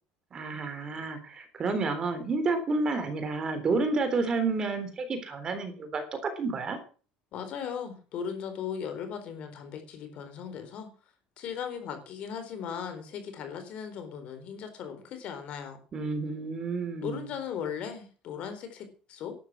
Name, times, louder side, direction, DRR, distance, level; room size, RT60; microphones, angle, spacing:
voice 1, 0.3-6.8 15.9-17.3, right 3 dB, 30° right, 8 dB, 3.5 m, -30 dB
voice 2, 7.3-10.9 11.4-15.8 17.0-19.3, left 7 dB, 50° left, 8 dB, 4.2 m, -37 dB
12.0 x 12.0 x 6.1 m, 0.38 s
cardioid pair, 155°, 3 cm